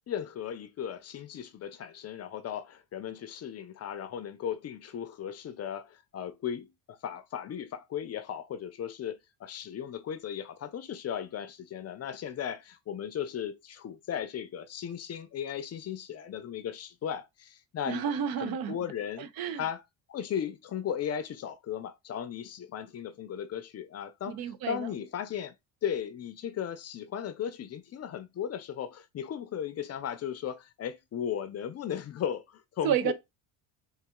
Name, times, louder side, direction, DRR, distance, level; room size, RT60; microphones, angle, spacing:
voice 1, 0.1-18.0 18.4-19.3 19.6-19.8 20.1-25.5 25.8-33.1, left 9 dB, 40° left, 0.5 m, -36 dB
voice 2, 17.9-18.8 19.2-19.6 24.3-24.9 32.8-33.1, right 8 dB, 60° right, 0.6 m, -30 dB
3.9 x 2.6 x 3.7 m
cardioid pair, 110°, 41 cm